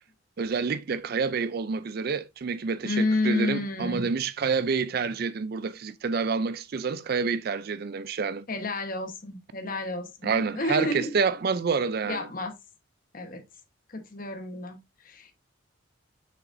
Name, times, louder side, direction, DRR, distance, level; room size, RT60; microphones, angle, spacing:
voice 1, 0.4-8.4 10.2-12.3, right 5 dB, 50° right, 0.4 m, -28 dB
voice 2, 2.8-4.1 8.5-11.1 12.1-12.5 13.1-13.4 13.9-14.8 15.0-15.3, left 2 dB, 45° left, 1.2 m, -30 dB
6.4 x 6.0 x 2.6 m
head